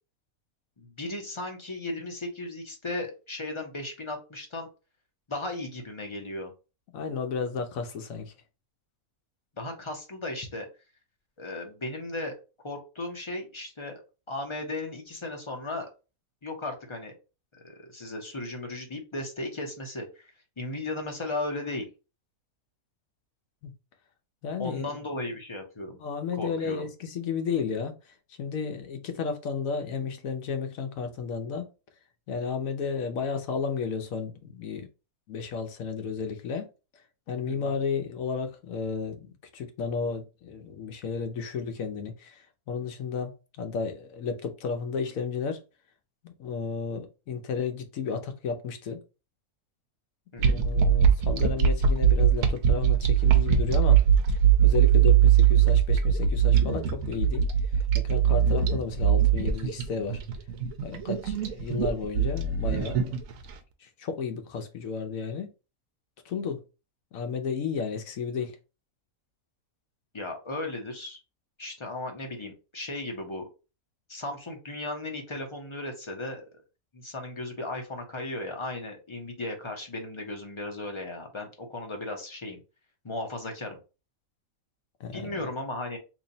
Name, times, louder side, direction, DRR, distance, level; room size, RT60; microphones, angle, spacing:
voice 1, 0.8-4.7 5.3-6.5 9.6-10.7 11.4-12.3 12.6-14.0 14.3-15.9 16.4-17.1 17.5-20.2 20.6-21.9 24.6-26.0 26.3-26.9 37.4-37.7 50.3-50.6 70.1-71.2 71.6-73.5 74.1-76.4 76.9-82.6 83.0-83.8 85.1-86.0, left 2 dB, 30° left, 0.5 m, -36 dB
voice 2, 6.9-8.3 23.6-23.7 24.4-25.0 26.0-27.9 28.4-31.7 32.3-34.9 35.3-36.7 37.3-45.6 46.2-49.0 50.4-54.0 54.3-57.4 57.9-60.2 60.8-63.2 63.8-65.5 66.3-66.6 67.1-68.6 85.0-85.5, left 5 dB, 70° left, 1.1 m, -33 dB
sound 1, 50.4-63.5, right 8 dB, 70° right, 1.0 m, -21 dB
3.0 x 2.7 x 3.9 m
omnidirectional pair, 1.5 m